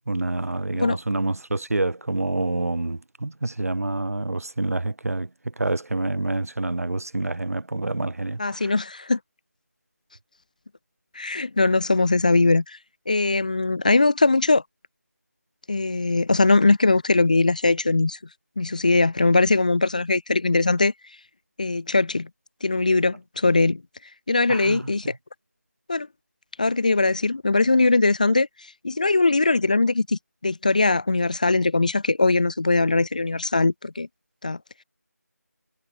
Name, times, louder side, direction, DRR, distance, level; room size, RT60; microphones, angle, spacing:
voice 1, 0.1-5.3 5.6-8.6 24.5-24.8, right 2 dB, 60° right, 1.4 m, -27 dB
voice 2, 8.4-9.2 11.1-12.8 13.1-14.6 15.7-18.2 18.6-20.9 21.6-22.3 22.6-23.8 24.3-25.1 25.9-26.1 26.6-34.1 34.4-34.6, left 3 dB, 25° left, 0.8 m, -21 dB
figure-of-eight pair, 175°, 9 cm